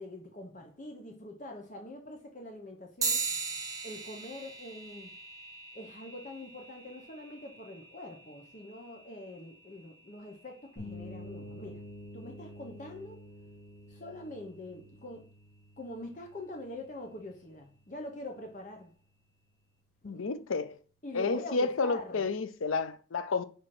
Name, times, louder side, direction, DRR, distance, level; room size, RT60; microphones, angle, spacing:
voice 1, 0.0-3.2 3.8-5.1 5.7-11.8 12.1-13.2 13.9-15.3 15.8-18.9 20.0-20.3 21.0-22.2, left 1 dB, 40° left, 0.9 m, -44 dB
sound 1, 3.0-12.8, right 5 dB, 20° right, 0.8 m, -41 dB
sound 2, 10.8-18.5, left 1 dB, 60° left, 3.6 m, -49 dB
voice 2, 20.0-20.8 21.1-23.4, left 4 dB, 85° left, 0.6 m, -31 dB
5.7 x 4.3 x 4.8 m
head